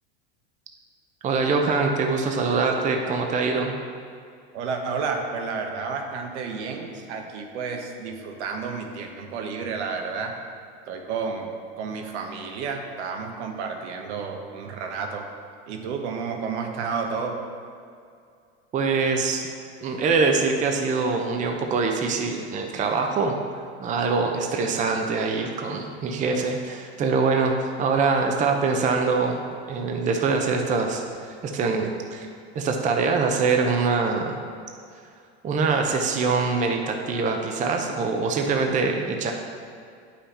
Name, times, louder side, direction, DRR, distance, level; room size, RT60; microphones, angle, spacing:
voice 1, 1.2-3.7 18.7-19.5 19.8-23.4 23.8-31.0 31.4-32.3 32.5-34.4 35.4-39.3, right 4 dB, 20° right, 3 dB, 0.6 m, -24 dB
voice 2, 4.5-10.4 10.9-15.3 15.7-17.4, right 5 dB, 80° right, 3 dB, 1.1 m, -31 dB
8.5 x 5.8 x 4.2 m, 2.3 s
supercardioid pair, 130°, 34 cm